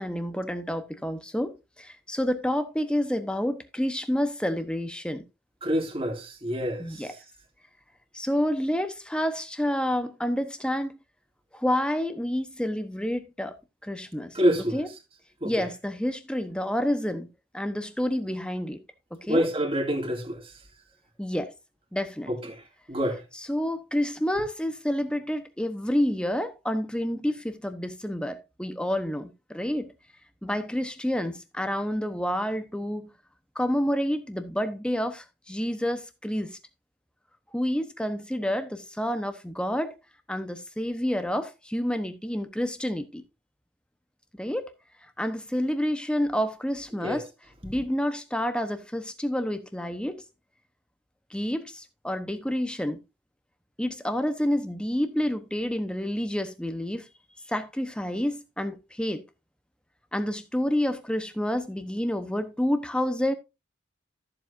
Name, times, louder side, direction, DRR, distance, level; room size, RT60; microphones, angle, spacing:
voice 1, 0.0-5.2 6.8-7.1 8.1-11.0 11.5-13.5 13.8-14.4 14.7-14.9 15.4-17.3 17.5-18.8 19.3-19.5 21.2-21.5 21.9-22.3 23.3-29.9 30.4-33.1 33.5-36.6 37.5-39.9 40.3-43.2 44.4-44.7 45.2-47.3 47.6-50.2 51.3-53.0 53.8-57.1 57.5-59.2 60.1-63.3, equal, 5° left, 0.9 m, -29 dB
voice 2, 5.6-6.8 14.3-14.8 15.4-15.5 19.3-20.4 22.9-23.2 47.0-47.2, equal, 30° right, 2.3 m, -26 dB
14.0 x 7.6 x 2.6 m
head